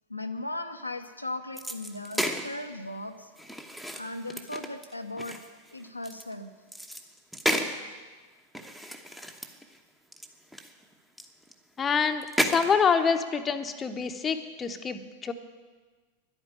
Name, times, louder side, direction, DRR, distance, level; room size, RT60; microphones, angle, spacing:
voice 1, 0.1-3.3 4.0-5.4 5.7-6.5, left 2 dB, 85° left, 5 dB, 0.8 m, -37 dB
sound 1, 1.6-2.5 3.4-6.3 6.7-7.8 8.5-9.8 10.1-10.3 10.5-11.5 12.2-12.8, equal, 5° right, 1.1 m, -32 dB
voice 2, 11.8-15.3, left 6 dB, 20° left, 7 dB, 0.9 m, -26 dB
11.0 x 9.0 x 9.9 m, 1.4 s
figure-of-eight pair, 90°, 0 cm